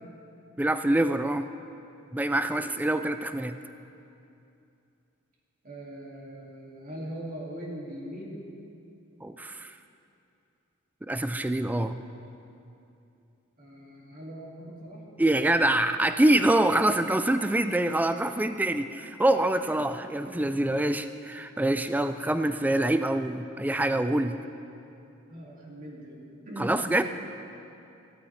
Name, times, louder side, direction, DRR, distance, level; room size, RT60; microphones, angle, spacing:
voice 1, 0.6-1.5 2.1-3.5 9.2-9.7 11.0-12.0 15.2-24.4 26.6-27.0, right 1 dB, 10° right, 9 dB, 0.3 m, -25 dB
voice 2, 5.6-8.4 13.6-15.0 18.2-18.5 19.5-19.7 20.0-20.7 21.4-21.5 25.3-26.8, right 1 dB, 40° right, -4 dB, 2.3 m, -41 dB
15.5 x 14.0 x 3.3 m, 2.7 s
head